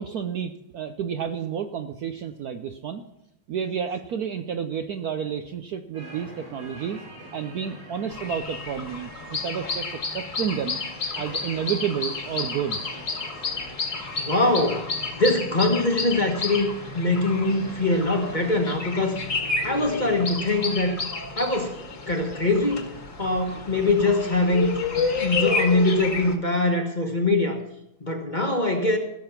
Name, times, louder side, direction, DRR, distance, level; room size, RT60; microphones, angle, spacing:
voice 1, 0.0-3.0 3.5-7.0 7.3-10.8 11.1-12.8 23.2-23.3, right 8 dB, 65° right, 7 dB, 1.0 m, -30 dB
sound 1, 5.9-21.0, equal, 85° right, 6.6 m, -44 dB
sound 2, 8.1-26.4, left 4 dB, 45° left, 1.8 m, -31 dB
voice 2, 14.2-14.9 15.2-19.2 19.6-21.0 21.4-21.8 22.1-22.9 23.2-27.6 28.0-29.0, left 2 dB, 25° left, 3 dB, 1.2 m, -23 dB
17.0 x 6.8 x 5.8 m, 0.85 s
omnidirectional pair, 2.2 m